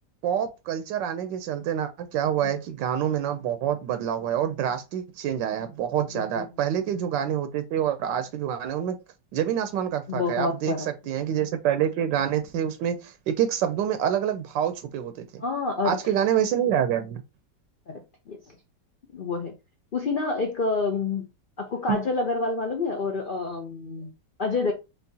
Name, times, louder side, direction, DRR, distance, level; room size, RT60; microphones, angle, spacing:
voice 1, 0.2-9.0 9.3-15.4 15.8-17.2 21.9-22.0, right 9 dB, 85° right, 1.2 m, -27 dB
voice 2, 6.1-6.4 10.1-10.8 15.4-16.0 17.9-18.4 19.1-19.5 19.9-21.3 21.6-24.1 24.4-24.7, left 3 dB, 85° left, 0.4 m, -28 dB
4.5 x 3.3 x 2.7 m
omnidirectional pair, 1.9 m